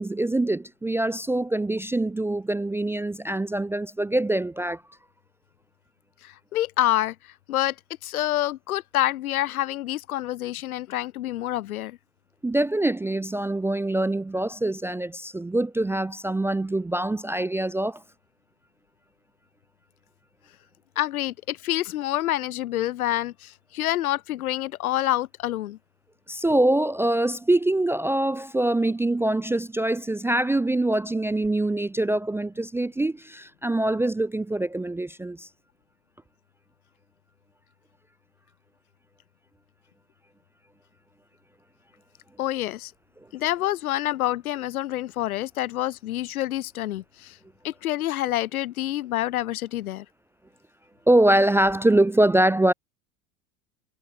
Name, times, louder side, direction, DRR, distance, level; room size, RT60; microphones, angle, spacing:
voice 1, 0.0-4.8 12.4-18.0 26.3-35.5 51.1-52.7, right 1 dB, 5° right, 0.5 m, -24 dB
voice 2, 6.2-7.1 7.5-7.7 8.0-12.0 21.0-25.8 42.4-42.9 43.3-47.4 47.6-50.0, left 14 dB, 70° left, 1.3 m, -27 dB
hypercardioid pair, 85°, 44 cm